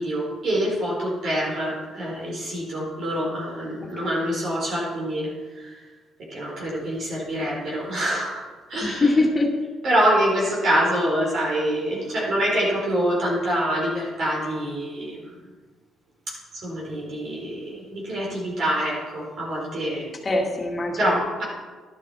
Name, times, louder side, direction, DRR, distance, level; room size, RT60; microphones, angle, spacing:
voice 1, 0.0-5.8 6.3-9.1 9.8-15.3 16.3-20.1 21.0-21.4, equal, 50° right, -4 dB, 4.5 m, -26 dB
voice 2, 8.8-9.5 20.2-21.2, left 2 dB, 30° left, 1 dB, 2.2 m, -23 dB
12.0 x 11.5 x 4.3 m, 1.4 s
cardioid pair, 110°, 0 cm